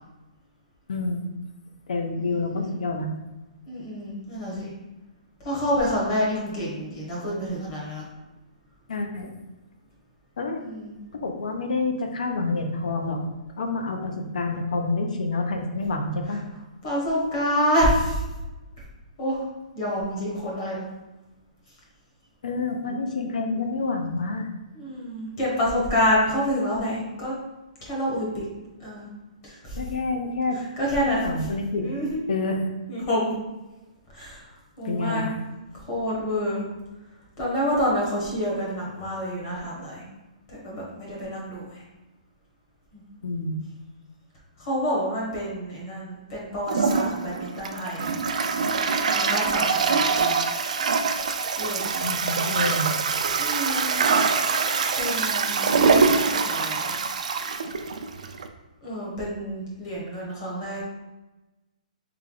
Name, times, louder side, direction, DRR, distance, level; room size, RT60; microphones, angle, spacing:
voice 1, 0.9-1.3 1.9-3.1 8.9-9.3 10.4-10.6 11.1-13.2 13.6-16.4 22.4-24.5 29.7-30.6 31.1-31.9 32.3-32.6 34.8-35.3 43.2-43.6 52.0-52.9, left 3 dB, 65° left, 4 dB, 0.7 m, -28 dB
voice 2, 2.1-2.8 3.7-4.7 5.4-8.1 10.5-10.9 16.8-18.2 19.2-19.5 19.7-20.8 24.7-27.3 27.8-28.4 28.8-29.1 29.4-29.8 30.5-31.5 31.8-32.2 32.9-33.3 34.1-34.5 34.8-35.3 35.7-36.6 37.4-40.0 40.5-41.8 42.9-43.0 44.6-48.1 49.1-50.4 51.6-52.0 53.3-53.9 55.0-57.0 58.8-60.8, equal, 30° left, -5 dB, 1.1 m, -28 dB
Toilet flush, 46.7-58.5, right 5 dB, 60° right, 0.4 m, -24 dB
3.3 x 3.2 x 3.8 m, 1.1 s
hypercardioid pair, 175°, 4 cm